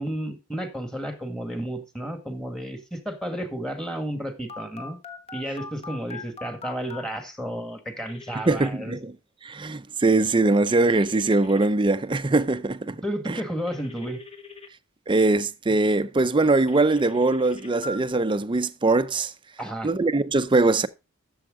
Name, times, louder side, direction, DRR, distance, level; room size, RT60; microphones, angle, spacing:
voice 1, 0.0-5.0 5.3-9.0 13.0-14.2 19.6-19.9, equal, 5° left, 1.8 m, -32 dB
Telephone, 4.5-7.0 8.1-8.7 10.7-11.7 13.7-14.7 16.7-18.0, left 4 dB, 30° left, 1.2 m, -41 dB
voice 2, 8.5-9.1 9.4-13.0 13.3-13.4 15.1-19.3 19.8-20.9, right 2 dB, 25° right, 0.6 m, -22 dB
12.5 x 7.2 x 3.6 m
head